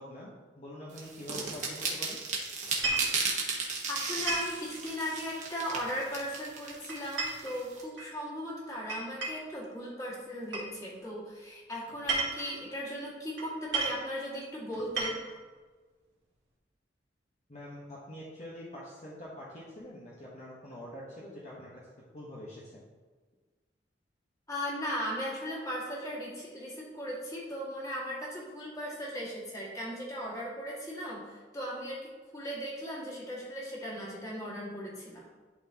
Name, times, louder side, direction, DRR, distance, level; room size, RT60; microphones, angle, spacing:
voice 1, 0.0-2.2 17.5-22.8, equal, 40° left, -6 dB, 1.2 m, -45 dB
sound 1, 1.0-7.8, right 4 dB, 45° right, 1.3 m, -35 dB
sound 2, 2.7-3.2 4.3-4.6 6.0-6.4 6.9-8.1 8.9-9.5 10.5-10.7 11.9-12.6 13.4-13.5 13.7-14.0 14.7-15.4, right 3 dB, 80° right, 1.9 m, -33 dB
voice 2, 3.9-15.2 24.5-35.2, equal, 20° left, -5 dB, 2.1 m, -37 dB
11.0 x 4.2 x 2.9 m, 1.4 s
head